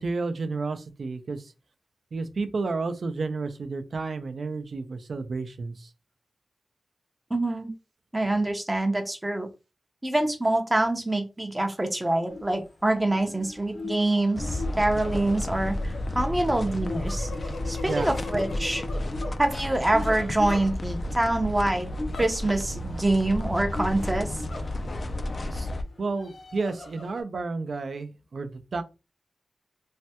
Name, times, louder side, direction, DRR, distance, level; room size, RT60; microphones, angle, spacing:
voice 1, 0.0-1.4 2.1-5.9 17.8-18.1 26.0-28.8, right 3 dB, 60° right, 8 dB, 0.4 m, -31 dB
voice 2, 7.3-7.7 8.1-9.5 10.0-17.3 17.7-18.8 19.4-21.9 22.2-24.4 25.5-25.7, right 2 dB, 15° right, 5 dB, 0.5 m, -25 dB
sound 1, 12.3-12.6 12.9-21.2 22.0-22.7 23.0-23.1 23.7-25.2 25.8-27.2, left 2 dB, 75° left, 0.9 m, -39 dB
sound 2, 14.4-25.8, left 1 dB, 45° left, 0.3 m, -32 dB
3.2 x 2.2 x 2.8 m, 0.28 s
wide cardioid pair, 135°, 0 cm